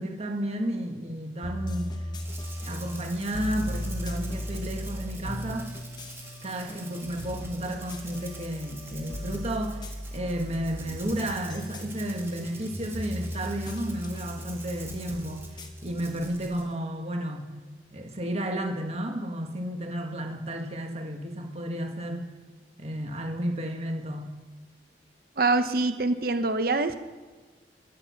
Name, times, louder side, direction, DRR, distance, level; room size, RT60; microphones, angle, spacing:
voice 1, 0.0-2.0 2.6-5.7 6.4-17.5 17.9-22.3 22.8-24.3, right 1 dB, 35° right, 3 dB, 1.6 m, -32 dB
sound 1, 1.4-16.7, left 1 dB, 25° left, 1.0 m, -37 dB
Rattle (instrument), 2.2-16.7, right 3 dB, 15° right, 1.6 m, -47 dB
voice 2, 25.4-27.0, right 3 dB, 55° right, 9 dB, 0.9 m, -24 dB
13.0 x 9.1 x 5.8 m, 1.4 s
head